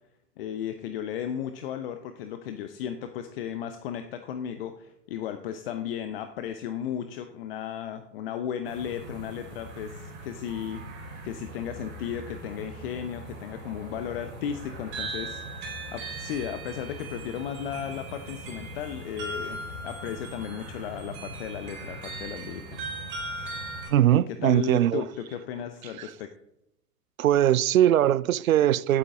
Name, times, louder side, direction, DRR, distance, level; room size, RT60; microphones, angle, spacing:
voice 1, 0.4-10.8 11.2-22.9 24.3-26.3, left 9 dB, 40° left, 0.7 m, -35 dB
sound 1, 8.7-23.9, right 2 dB, 25° right, 4.6 m, -39 dB
voice 2, 23.9-25.0 27.2-29.0, right 12 dB, 60° right, 0.5 m, -21 dB
16.0 x 8.6 x 3.7 m
figure-of-eight pair, 100°, 47 cm